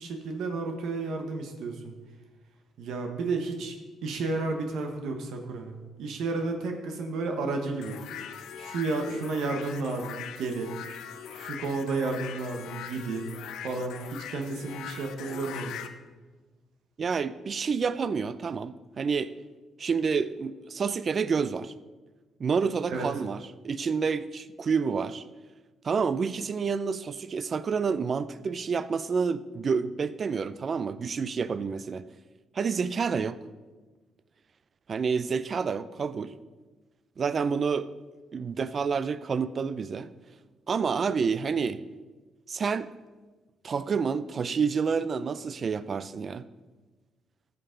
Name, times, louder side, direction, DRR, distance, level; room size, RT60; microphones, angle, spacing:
voice 1, 0.0-1.9 2.8-3.7 4.0-8.0 8.6-10.7 11.3-13.3 13.6-15.7 22.9-23.1, right 3 dB, 80° right, 4 dB, 1.2 m, -32 dB
sound 1, 7.8-15.9, left 8 dB, 85° left, 0.6 m, -41 dB
voice 2, 17.0-19.3 19.8-21.7 22.4-25.2 25.8-32.1 32.5-33.4 34.9-36.3 37.2-37.9 38.3-40.1 40.7-41.8 42.5-42.9 43.6-46.5, right 5 dB, 45° right, 16 dB, 0.5 m, -29 dB
14.0 x 6.8 x 3.8 m, 1.3 s
cardioid pair, 90°, 0 cm